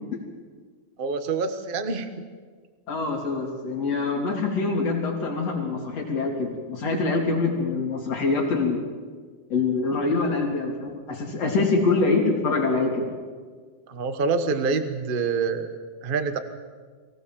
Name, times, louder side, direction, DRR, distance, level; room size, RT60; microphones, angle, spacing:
voice 1, 1.0-2.2 13.9-15.7 16.0-16.4, right 4 dB, 65° right, 9 dB, 0.5 m, -26 dB
voice 2, 2.9-8.8 9.5-13.1, left 3 dB, 60° left, 1 dB, 4.3 m, -25 dB
24.0 x 17.5 x 7.6 m, 1.6 s
omnidirectional pair, 3.3 m